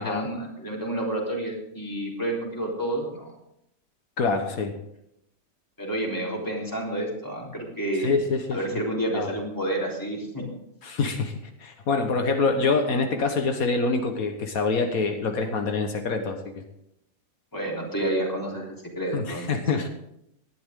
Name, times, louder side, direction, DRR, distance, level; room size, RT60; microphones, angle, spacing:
voice 1, 0.0-3.3 5.8-8.1 8.5-10.5 17.5-19.6, right 1 dB, 15° left, -2 dB, 3.6 m, -29 dB
voice 2, 4.2-4.8 8.0-8.6 9.1-9.3 10.8-11.3 11.6-16.6 19.1-19.9, left 4 dB, 80° left, 5 dB, 1.7 m, -25 dB
18.5 x 12.0 x 3.7 m, 0.80 s
omnidirectional pair, 1.5 m